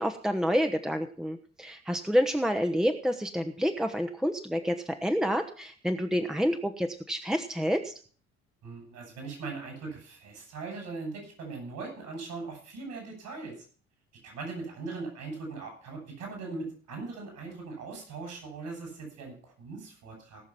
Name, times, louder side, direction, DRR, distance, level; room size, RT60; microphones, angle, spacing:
voice 1, 0.0-7.9, equal, ahead, 6 dB, 1.1 m, -28 dB
voice 2, 8.6-13.6 14.2-20.4, right 3 dB, 60° right, 2 dB, 7.0 m, -40 dB
18.0 x 6.5 x 5.8 m, 0.43 s
figure-of-eight pair, 50°, 33 cm